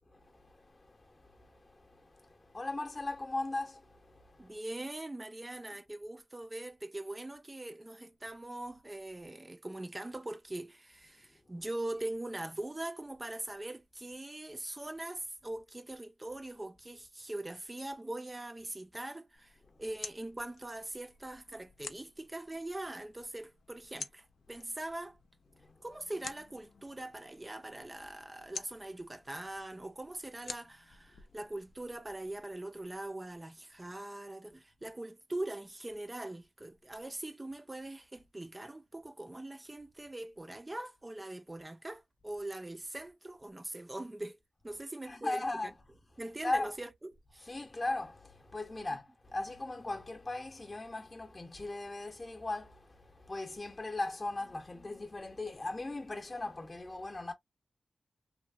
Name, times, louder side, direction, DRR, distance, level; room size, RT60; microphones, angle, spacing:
voice 1, 0.1-4.5 45.0-45.7 46.4-46.7 47.4-57.3, left 2 dB, 35° left, 0.7 m, -38 dB
voice 2, 4.4-25.2 25.8-44.4 44.6-45.7 46.2-47.5 48.7-48.9, right 1 dB, 20° right, 0.4 m, -42 dB
sound 1, 19.3-32.1, left 5 dB, 85° left, 0.4 m, -51 dB
2.8 x 2.1 x 2.4 m
wide cardioid pair, 75°, 0 cm